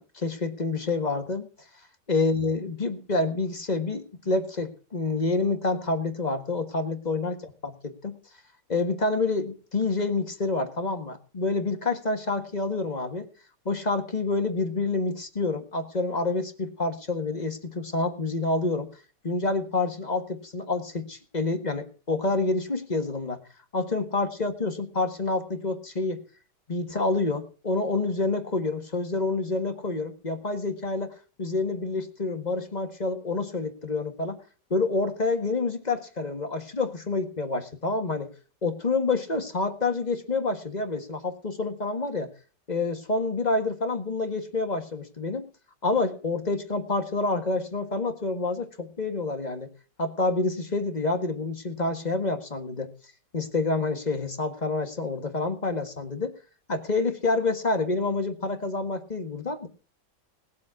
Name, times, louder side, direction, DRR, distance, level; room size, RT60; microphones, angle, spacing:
voice 1, 0.0-1.5 2.1-8.2 8.7-13.3 13.6-18.9 19.2-23.4 23.7-26.2 26.7-34.4 34.7-38.3 38.6-42.3 42.7-45.4 45.8-49.7 50.0-52.9 53.3-56.3 56.7-59.7, left 3 dB, 25° left, 6 dB, 1.5 m, -28 dB
19.5 x 7.6 x 5.8 m, 0.38 s
omnidirectional pair, 1.9 m